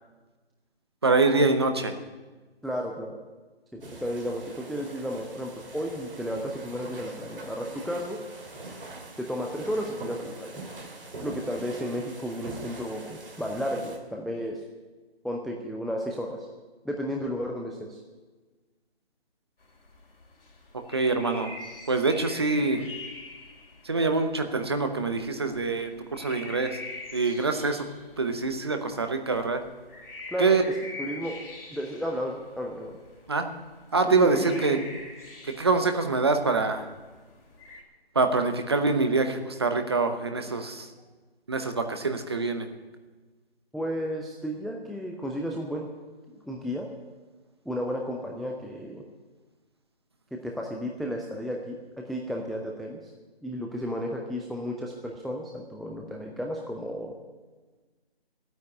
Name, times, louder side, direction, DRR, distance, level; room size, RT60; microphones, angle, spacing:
voice 1, 1.0-2.0 20.9-21.5 21.9-22.9 23.8-26.8 27.1-27.9 28.2-29.6 30.4-30.6 33.3-33.5 33.9-34.8 35.4-36.9 38.1-40.9 41.5-42.7, right 3 dB, 25° right, 7 dB, 0.8 m, -25 dB
voice 2, 2.6-3.2 3.7-8.2 9.2-10.6 11.2-14.6 15.2-16.5 16.8-18.0 30.3-30.6 31.0-31.4 31.7-33.0 34.1-34.8 43.7-45.9 46.4-46.9 47.7-49.0 50.3-53.1 53.4-57.1, equal, ahead, 0 dB, 0.4 m, -33 dB
sound 1, 3.8-14.0, right 2 dB, 60° right, 2.8 m, -43 dB
sound 2, 19.6-37.8, left 2 dB, 60° left, 3.9 m, -45 dB
12.5 x 9.2 x 9.6 m, 1.3 s
figure-of-eight pair, 170°, 32 cm